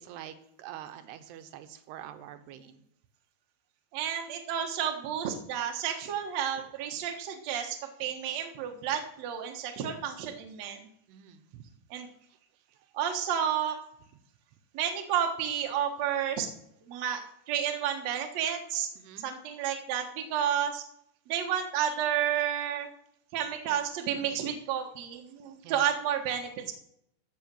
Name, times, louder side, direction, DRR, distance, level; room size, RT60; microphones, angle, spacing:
voice 1, 0.0-2.8 11.1-11.7 12.3-12.4 19.0-19.3 25.6-25.8, right 11 dB, 85° right, 9 dB, 2.9 m, -46 dB
voice 2, 3.9-10.9 11.9-12.1 12.9-13.8 14.7-16.5 16.9-18.9 19.2-20.8 21.3-22.9 23.3-26.7, right 9 dB, 60° right, 3 dB, 1.9 m, -31 dB
14.5 x 5.5 x 7.5 m, 0.76 s
omnidirectional pair, 4.8 m